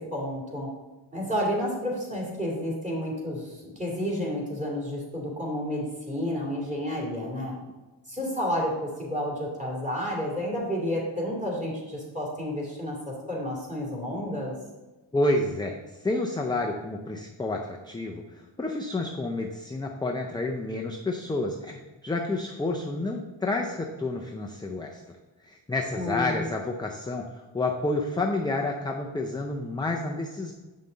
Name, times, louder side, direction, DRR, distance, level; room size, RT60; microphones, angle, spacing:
voice 1, 0.1-0.7 1.1-7.6 8.1-14.5 25.9-26.4, equal, 15° right, -4 dB, 2.5 m, -31 dB
voice 2, 15.1-15.7 16.0-25.2 25.4-30.5, left 2 dB, 10° left, 1 dB, 0.4 m, -29 dB
7.5 x 5.5 x 3.9 m, 1.2 s
wide cardioid pair, 125°, 50 cm